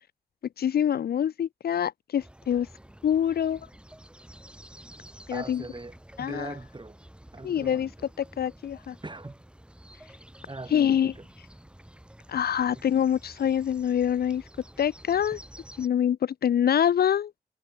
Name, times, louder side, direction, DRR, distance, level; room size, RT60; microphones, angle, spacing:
voice 1, 0.6-2.7 3.0-3.6 5.3-5.6 6.2-6.5 7.4-7.9 8.2-9.0 10.7-11.1 12.3-14.4 14.8-15.4 15.8-17.3, left 9 dB, 65° left, 0.6 m, -25 dB
sound 1, 2.2-15.9, right 1 dB, 5° right, 1.3 m, -50 dB
voice 2, 5.3-7.0 7.3-8.1 9.0-9.4 10.5-11.2 12.7-12.9, right 2 dB, 25° right, 4.9 m, -41 dB
supercardioid pair, 50°, 17 cm